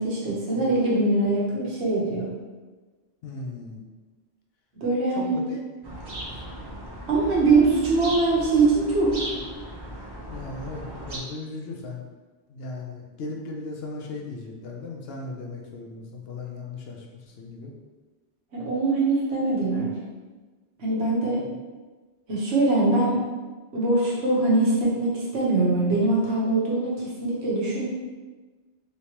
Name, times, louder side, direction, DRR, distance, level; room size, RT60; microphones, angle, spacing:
voice 1, 0.0-2.3 4.8-5.4 7.1-9.1 18.5-19.9 20.8-21.4 22.3-23.2 23.7-27.9, right 2 dB, 75° right, -5 dB, 1.2 m, -22 dB
voice 2, 3.2-3.9 5.1-5.6 6.3-6.4 10.3-12.0 12.5-17.7, left 3 dB, 70° left, 0 dB, 0.8 m, -37 dB
sound 1, 5.8-11.2, right 1 dB, 35° right, 0.4 m, -37 dB
3.3 x 3.0 x 2.9 m, 1.3 s
omnidirectional pair, 1.1 m